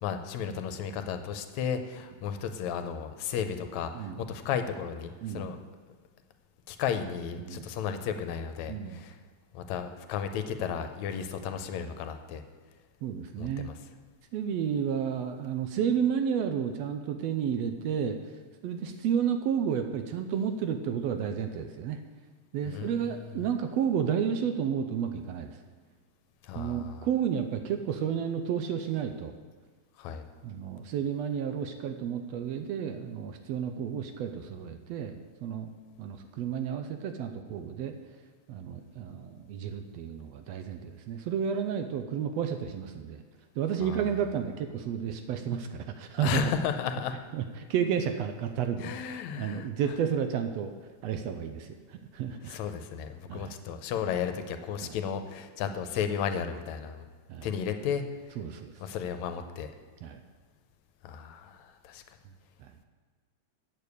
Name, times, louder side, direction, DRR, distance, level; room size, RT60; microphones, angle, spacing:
voice 1, 0.0-5.6 6.7-9.2 9.5-12.4 13.4-13.8 22.7-23.4 26.4-27.1 30.0-30.3 43.8-44.0 46.2-47.2 48.8-49.7 52.4-57.0 57.4-58.4 58.8-59.7 61.0-62.0, left 7 dB, 80° left, 8 dB, 2.0 m, -34 dB
voice 2, 7.4-7.7 8.7-9.0 13.0-13.7 14.3-18.2 18.6-22.0 22.5-25.5 26.5-29.3 30.4-35.2 35.4-35.7 36.0-37.9 38.5-43.2 43.6-46.5 47.3-47.4 47.7-50.7 51.0-52.6 53.3-53.5 54.8-54.9 57.3-57.5 58.4-58.7 60.0-60.2 62.6-62.9, right 8 dB, 75° right, 7 dB, 1.6 m, -31 dB
8.7 x 6.8 x 8.2 m, 1.5 s
omnidirectional pair, 3.3 m